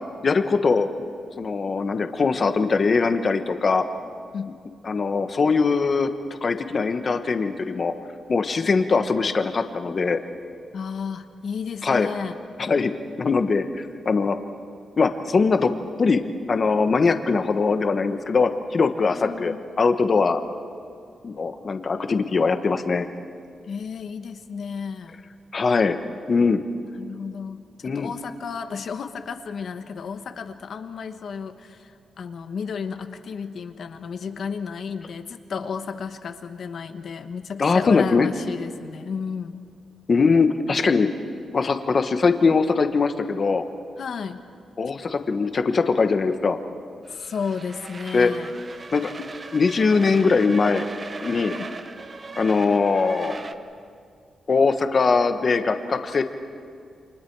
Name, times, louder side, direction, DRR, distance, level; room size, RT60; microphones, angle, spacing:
voice 1, 0.2-0.9 1.4-3.8 4.8-6.1 6.4-7.9 8.3-10.2 11.8-12.1 12.6-12.9 13.2-14.4 15.0-15.7 16.0-16.2 16.5-20.4 21.2-23.1 25.5-26.0 26.3-26.6 27.8-28.1 37.6-38.3 40.1-41.1 41.5-43.6 44.8-46.6 48.1-48.3 48.9-49.1 49.5-50.8 51.2-51.6 52.4-53.4 54.5-56.2, left 4 dB, 35° left, 8 dB, 1.1 m, -21 dB
voice 2, 10.7-12.4 19.1-19.6 23.7-25.2 26.9-39.6 44.0-44.4 47.1-48.5 51.5-51.7, left 6 dB, 55° left, 8 dB, 1.2 m, -33 dB
sound 1, 47.0-53.5, right 3 dB, 30° right, 0.9 m, -38 dB
29.0 x 27.0 x 4.7 m, 2.3 s
wide cardioid pair, 170°, 0 cm